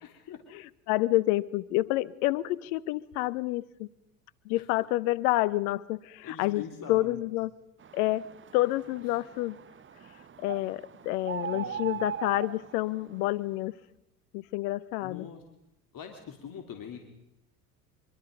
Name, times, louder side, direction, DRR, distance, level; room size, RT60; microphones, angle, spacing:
voice 1, 0.0-0.4 6.2-7.2 11.5-12.0 15.0-15.4 15.9-17.0, left 8 dB, 45° left, 4 dB, 3.3 m, -42 dB
voice 2, 0.5-3.9 4.4-6.6 6.9-7.5 7.9-8.3 8.5-9.6 10.4-13.7 14.3-15.3, left 18 dB, 70° left, 20 dB, 1.0 m, -28 dB
sound 1, 7.8-13.4, right 8 dB, 25° right, 1.0 m, -40 dB
24.5 x 24.0 x 5.3 m, 0.83 s
hypercardioid pair, 70°, 47 cm